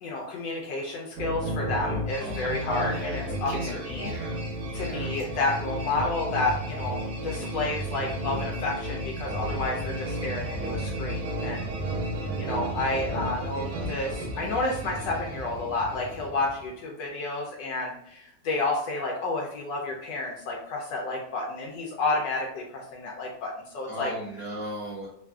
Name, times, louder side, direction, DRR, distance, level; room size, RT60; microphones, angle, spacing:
voice 1, 0.0-4.1 4.7-11.7 12.4-24.1, left 2 dB, 80° left, -1 dB, 1.2 m, -30 dB
sound 1, 1.2-16.7, right 1 dB, 65° right, 1.2 m, -33 dB
voice 2, 2.2-4.4 4.8-5.1 23.9-25.1, equal, 45° left, -6 dB, 0.9 m, -36 dB
3.3 x 2.4 x 2.2 m, 0.73 s
omnidirectional pair, 1.9 m